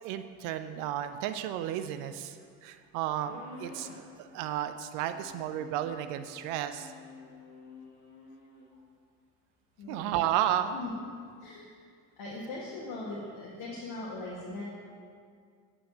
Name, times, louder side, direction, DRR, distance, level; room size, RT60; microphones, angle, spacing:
voice 1, 0.0-6.9 9.9-10.7, right 11 dB, 50° right, 10 dB, 0.5 m, -33 dB
sound 1, 3.2-4.1 5.0-8.7, left 3 dB, 85° left, 1.1 m, -50 dB
voice 2, 9.8-10.3 10.7-10.9 11.4-11.7 12.2-14.6, left 2 dB, 55° left, -5 dB, 1.9 m, -40 dB
8.4 x 6.0 x 7.7 m, 2.1 s
figure-of-eight pair, 60°, 44 cm